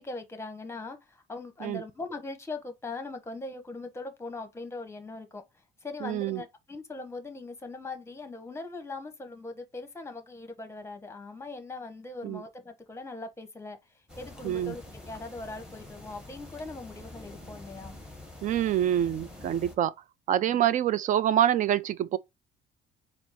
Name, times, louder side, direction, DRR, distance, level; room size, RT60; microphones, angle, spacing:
voice 1, 0.0-5.4 5.8-13.8 14.2-18.0 20.5-20.7, left 3 dB, 15° left, 0.9 m, -40 dB
voice 2, 6.0-6.4 12.2-12.4 14.4-14.7 18.4-19.9 20.3-22.2, right 11 dB, 50° right, 0.4 m, -26 dB
sound 1, 14.1-19.7, left 2 dB, 5° right, 1.5 m, -46 dB
4.4 x 2.0 x 4.0 m
cardioid pair, 110°, 17 cm